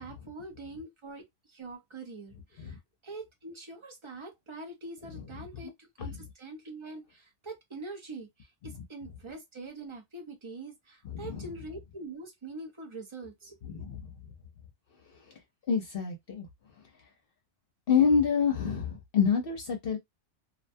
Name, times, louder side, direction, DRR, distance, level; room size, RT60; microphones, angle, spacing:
voice 1, 0.0-13.7, right 2 dB, 35° right, 0.5 m, -44 dB
voice 2, 11.0-11.5 13.7-14.0 15.7-16.5 17.9-20.0, left 6 dB, 55° left, 0.8 m, -27 dB
2.5 x 2.2 x 2.6 m
omnidirectional pair, 1.2 m